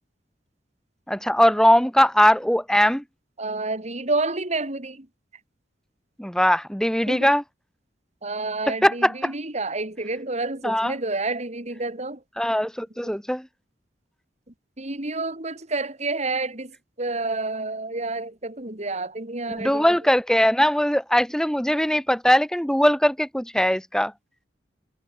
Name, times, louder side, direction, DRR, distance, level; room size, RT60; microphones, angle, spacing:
voice 1, 1.1-3.0 6.2-7.4 8.7-9.3 10.6-10.9 12.4-13.4 19.5-24.1, equal, 5° left, 2.4 m, -20 dB
voice 2, 3.4-5.1 7.1-7.3 8.2-12.2 13.0-13.1 14.8-16.7 17.0-19.9, right 3 dB, 40° right, 3.4 m, -29 dB
head